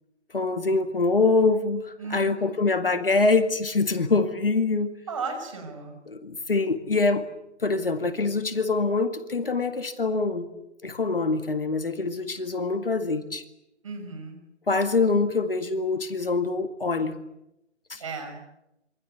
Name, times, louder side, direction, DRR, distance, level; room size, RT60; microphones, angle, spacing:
voice 1, 0.3-4.9 6.1-7.3 7.6-10.5 10.8-13.4 14.7-17.2 17.9-18.0, left 3 dB, 50° left, 9 dB, 2.1 m, -24 dB
voice 2, 2.0-2.5 5.1-6.0 13.8-14.4 18.0-18.4, right 4 dB, 25° right, 4 dB, 6.1 m, -35 dB
27.0 x 24.5 x 8.2 m, 0.86 s
figure-of-eight pair, 160°, 36 cm